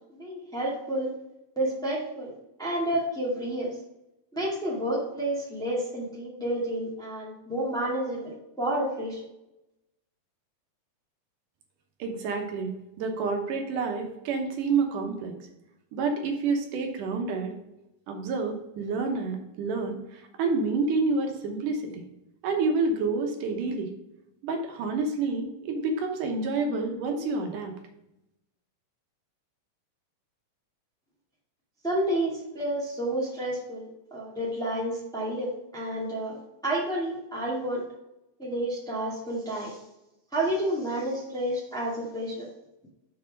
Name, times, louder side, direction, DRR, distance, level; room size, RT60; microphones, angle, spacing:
voice 1, 0.1-1.1 1.5-3.7 4.3-9.2 31.8-37.8 38.4-39.8 40.3-42.5, right 1 dB, ahead, -5 dB, 1.6 m, -30 dB
voice 2, 12.0-12.7 13.0-15.3 15.9-17.5 18.1-22.0 22.4-23.9 24.4-27.7, right 4 dB, 85° right, 3 dB, 2.6 m, -28 dB
6.3 x 4.6 x 5.1 m, 0.89 s
omnidirectional pair, 3.6 m